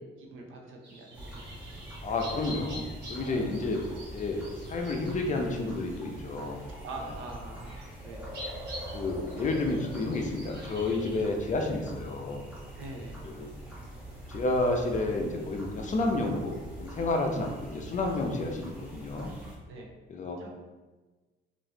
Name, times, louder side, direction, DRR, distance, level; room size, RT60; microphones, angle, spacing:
voice 1, 0.2-2.1 3.1-3.6 3.9-4.0 6.8-8.3 12.8-13.2 19.7-19.9 20.4-20.5, right 2 dB, 85° right, 1 dB, 0.6 m, -44 dB
sound 1, 0.8-11.2, equal, 55° right, 1.2 m, -47 dB
sound 2, 1.1-19.6, right 1 dB, 5° right, 1.1 m, -43 dB
voice 2, 2.0-2.8 3.1-3.8 4.1-4.4 4.7-6.6 7.0-7.1 8.9-12.4 13.2-13.5 14.3-19.3 20.1-20.4, left 2 dB, 40° left, 2 dB, 0.5 m, -30 dB
3.0 x 2.5 x 2.8 m, 1.2 s
cardioid pair, 90°, 20 cm